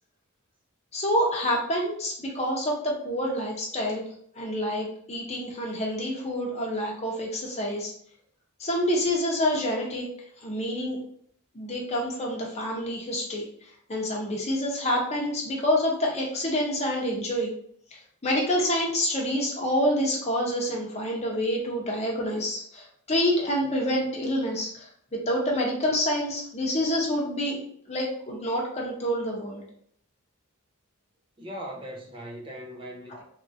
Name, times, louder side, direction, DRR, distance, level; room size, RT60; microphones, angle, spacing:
voice 1, 0.9-4.0 4.4-7.9 8.6-10.1 10.4-11.0 11.5-17.5 17.9-24.9 25.3-29.6 33.1-33.2, equal, 30° left, 0.8 m, -27 dB
voice 2, 31.4-33.2, equal, 25° right, 0.5 m, -39 dB
2.9 x 2.5 x 2.6 m
head